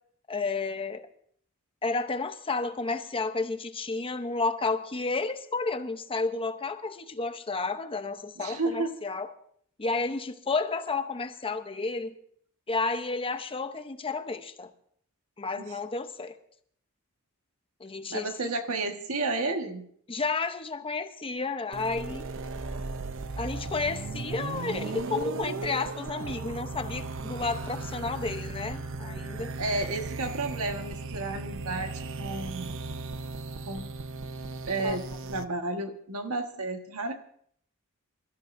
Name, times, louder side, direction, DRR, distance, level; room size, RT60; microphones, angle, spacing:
voice 1, 0.3-1.1 1.8-9.3 9.8-12.1 12.7-14.7 15.4-16.4 17.8-18.5 20.1-22.3 23.4-29.5 34.8-35.0, left 3 dB, 25° left, 0.8 m, -31 dB
voice 2, 8.4-8.9 15.6-15.7 18.1-19.9 29.6-32.7 33.7-33.9 34.6-37.1, right 2 dB, 90° right, 1.6 m, -32 dB
sound 1, 21.7-35.4, right 3 dB, 65° right, 0.7 m, -36 dB
26.5 x 13.5 x 2.6 m
head